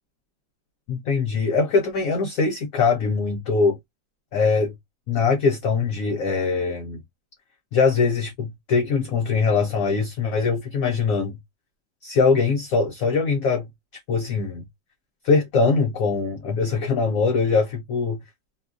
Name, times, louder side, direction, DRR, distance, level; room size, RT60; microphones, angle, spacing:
voice 1, 0.9-3.8 4.3-4.7 5.1-7.0 7.7-11.4 12.0-13.7 14.1-14.6 15.2-18.2, left 4 dB, 65° left, 0.8 m, -22 dB
3.0 x 2.3 x 2.3 m
omnidirectional pair, 1.9 m